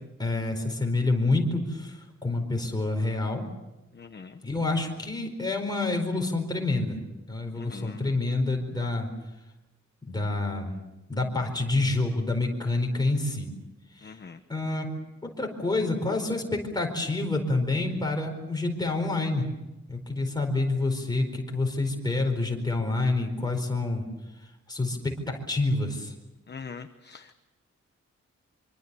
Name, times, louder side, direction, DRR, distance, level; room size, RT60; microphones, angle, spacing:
voice 1, 0.2-3.4 4.4-7.0 7.3-9.1 10.1-10.7 11.1-13.5 14.0-14.1 14.5-14.9 15.2-19.5 19.9-24.1 24.7-26.1, left 2 dB, 15° left, 2 dB, 4.5 m, -28 dB
voice 2, 3.9-4.4 7.6-8.1 14.0-14.4 26.5-27.3, left 5 dB, 35° left, 7 dB, 1.0 m, -42 dB
25.5 x 25.0 x 7.0 m, 1.0 s
wide cardioid pair, 175°, 29 cm